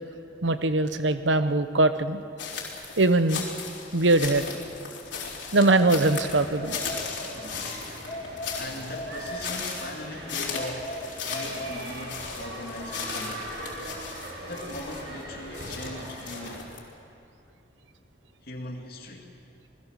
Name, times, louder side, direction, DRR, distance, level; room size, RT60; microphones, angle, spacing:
voice 1, 0.4-2.2 3.0-3.4 3.9-4.5 5.5-6.8, right 2 dB, 85° right, 10 dB, 1.1 m, -22 dB
sound 1, 2.4-16.8, left 5 dB, 80° left, 4.2 m, -37 dB
sound 2, 5.8-7.5 8.1-10.0 10.5-12.4, left 1 dB, 30° left, 2.6 m, -38 dB
sound 3, 5.9-16.6, right 1 dB, 65° right, 7.6 m, -41 dB
voice 2, 7.3-7.8 8.6-11.0 11.2-13.5 14.5-16.7 18.4-19.3, left 1 dB, 55° left, 0 dB, 2.5 m, -39 dB
27.5 x 20.0 x 6.6 m, 2.6 s
head